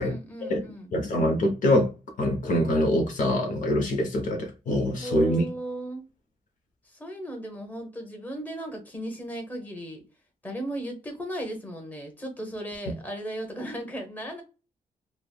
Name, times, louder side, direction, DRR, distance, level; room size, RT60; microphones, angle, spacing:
voice 1, 0.0-0.9 4.9-6.0 6.8-10.0 10.4-14.4, right 1 dB, 10° left, 0.9 m, -36 dB
voice 2, 0.9-1.9 2.2-5.4, left 1 dB, 65° left, 0.7 m, -24 dB
3.2 x 2.0 x 2.2 m
cardioid pair, 100°, 14 cm